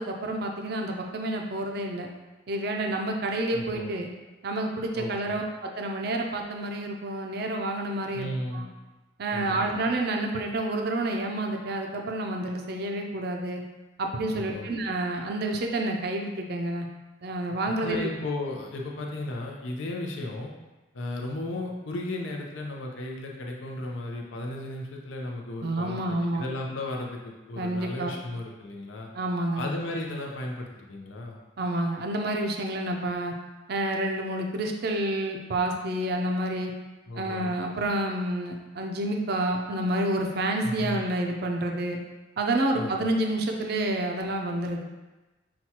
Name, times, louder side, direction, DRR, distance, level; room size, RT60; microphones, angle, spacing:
voice 1, 0.0-2.1 2.5-4.1 4.4-8.6 9.2-13.6 14.0-16.9 17.2-18.1 25.6-26.5 27.6-28.2 29.1-29.7 31.6-33.3 33.7-36.7 37.1-42.0 42.4-44.8, right 1 dB, 55° right, 3 dB, 0.4 m, -29 dB
voice 2, 3.5-3.9 4.9-5.4 8.1-8.7 9.3-9.8 14.3-14.7 17.8-20.5 20.9-29.1 29.6-31.4 37.1-37.5 40.6-41.0 42.7-43.1, left 2 dB, 75° left, 0 dB, 0.6 m, -35 dB
5.9 x 2.3 x 2.8 m, 1.1 s
head